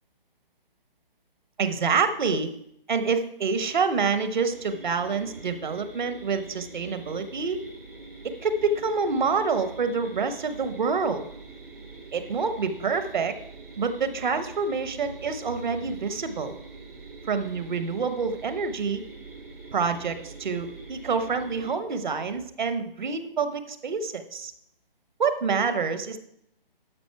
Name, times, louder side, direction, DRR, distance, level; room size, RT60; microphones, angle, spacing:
voice 1, 1.6-2.5 2.9-7.6 8.2-11.3 12.1-13.4 13.8-16.6 17.3-19.0 19.7-24.5 25.2-26.2, right 5 dB, 55° right, 10 dB, 1.0 m, -27 dB
sound 1, 4.5-21.7, right 3 dB, 90° right, 2.9 m, -44 dB
12.5 x 5.2 x 4.5 m, 0.72 s
figure-of-eight pair, 155°, 29 cm